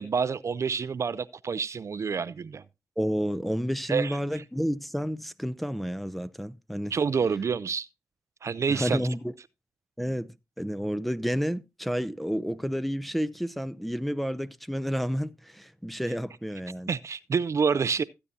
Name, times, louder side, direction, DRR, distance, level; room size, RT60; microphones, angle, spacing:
voice 1, 0.0-2.6 3.9-4.2 6.9-7.9 8.4-9.0 16.9-18.0, right 5 dB, 50° right, 0.4 m, -28 dB
voice 2, 3.0-6.9 8.7-9.3 10.0-16.9, equal, ahead, 0.6 m, -30 dB
15.0 x 8.3 x 2.7 m
cardioid pair, 60°, 6 cm